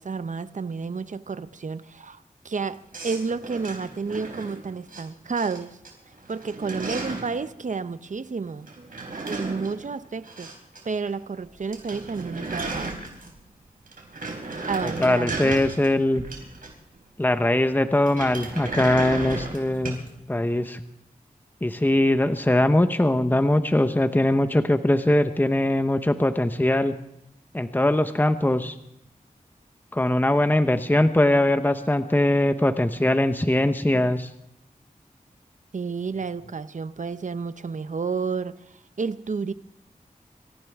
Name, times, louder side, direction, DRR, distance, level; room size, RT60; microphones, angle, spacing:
voice 1, 0.0-5.8 6.3-8.7 9.3-10.5 10.8-13.0 14.7-15.6 35.7-39.5, right 5 dB, 60° right, 13 dB, 0.8 m, -31 dB
sound 1, 2.9-5.0 5.4-5.9 6.2-7.4 8.7-10.8 11.1-11.2 11.5-11.6 11.7-13.5 13.9-17.0 18.0-20.1, right 3 dB, 75° right, 4.0 m, -34 dB
voice 2, 14.8-16.2 17.2-20.0 20.3-20.8 21.6-26.9 27.5-28.8 29.9-34.3, left 1 dB, 15° left, 9 dB, 1.0 m, -21 dB
26.0 x 14.5 x 3.6 m, 0.76 s
cardioid pair, 45°, 15 cm